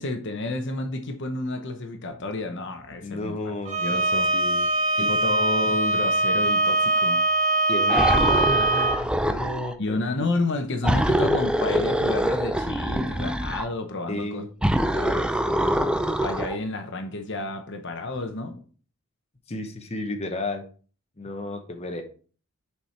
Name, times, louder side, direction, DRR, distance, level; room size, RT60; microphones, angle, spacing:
voice 1, 0.0-3.4 3.8-4.3 5.0-7.3 9.8-14.4 14.8-15.3 16.2-18.6, left 2 dB, 55° left, 5 dB, 0.9 m, -30 dB
voice 2, 3.0-3.8 4.3-4.7 5.0-5.1 7.7-10.3 14.1-14.5 15.6-15.7 19.5-20.6 21.2-22.0, left 2 dB, 30° left, 4 dB, 1.0 m, -32 dB
Bowed string instrument, 3.7-9.0, right 2 dB, 35° right, 1.3 m, -22 dB
sound 1, 7.9-9.7 10.8-13.7 14.6-16.6, right 1 dB, 5° right, 0.4 m, -24 dB
6.9 x 4.6 x 4.3 m, 0.40 s
head